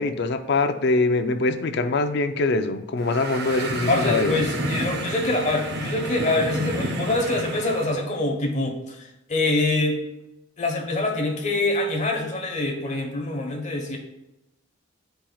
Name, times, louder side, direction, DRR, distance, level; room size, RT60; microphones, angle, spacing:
voice 1, 0.0-4.4, left 3 dB, 55° left, 8 dB, 0.5 m, -23 dB
sound 1, 3.0-8.0, right 1 dB, 50° right, 0.7 m, -30 dB
voice 2, 3.9-10.0 10.6-14.0, left 2 dB, 35° left, 1 dB, 1.1 m, -25 dB
10.0 x 4.4 x 2.3 m, 0.90 s
head